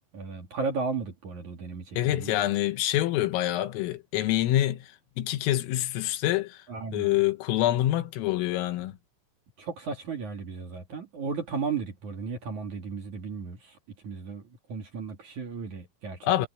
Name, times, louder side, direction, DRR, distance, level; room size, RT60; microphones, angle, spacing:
voice 1, 0.1-2.3 6.7-7.2 9.6-13.7 14.0-14.4 14.7-16.3, right 5 dB, 45° right, 3.0 m, -34 dB
voice 2, 2.0-6.6 6.9-8.9 16.2-16.5, left 14 dB, 85° left, 3.9 m, -26 dB
omnidirectional pair, 5.9 m